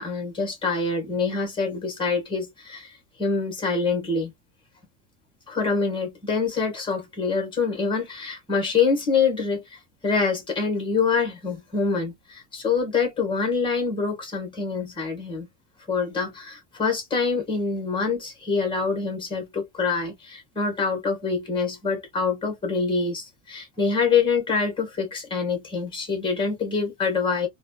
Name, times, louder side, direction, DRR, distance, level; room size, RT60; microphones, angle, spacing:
voice 1, 0.0-4.3 5.5-15.5 15.9-27.5, left 5 dB, 15° left, 1.3 m, -25 dB
3.2 x 2.4 x 2.3 m
cardioid pair, 160°, 37 cm